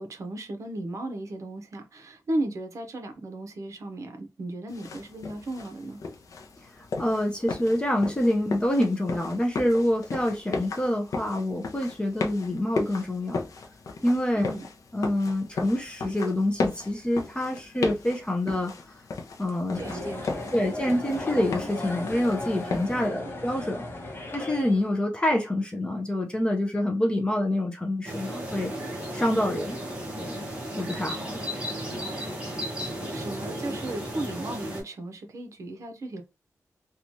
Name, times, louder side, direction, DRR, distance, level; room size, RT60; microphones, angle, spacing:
voice 1, 0.0-6.0 14.4-14.7 19.7-20.6 23.0-23.3 31.9-32.2 33.1-36.2, right 1 dB, 60° right, 0.7 m, -35 dB
sound 1, 4.7-23.1, left 3 dB, 70° left, 0.5 m, -36 dB
voice 2, 7.0-13.4 14.0-14.5 14.9-18.7 19.4-19.8 20.5-23.8 24.3-28.7 29.1-29.8 30.2-30.4 30.8-31.4, left 1 dB, 15° left, 0.5 m, -26 dB
sound 2, 19.7-24.9, left 2 dB, 35° left, 0.9 m, -36 dB
sound 3, 28.0-34.8, equal, 20° right, 0.9 m, -34 dB
2.9 x 2.3 x 2.6 m
wide cardioid pair, 165°, 6 cm